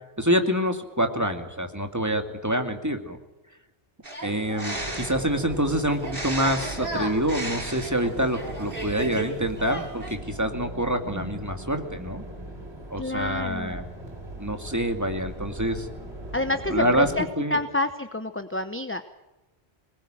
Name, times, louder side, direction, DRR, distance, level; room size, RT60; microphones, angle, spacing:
voice 1, 0.2-3.2 4.2-12.2 12.9-13.8 14.4-15.9 16.7-17.1 17.4-17.6, equal, 15° right, 5 dB, 2.4 m, -26 dB
sound 1, 4.0-5.3 6.0-9.3 9.6-10.1, right 1 dB, 55° right, 5.9 m, -34 dB
sound 2, 4.7-17.2, right 1 dB, 70° right, 5.0 m, -39 dB
voice 2, 13.0-13.8 16.3-19.0, left 2 dB, 10° left, 9 dB, 0.9 m, -28 dB
24.0 x 20.5 x 9.0 m, 1.1 s
omnidirectional pair, 1.1 m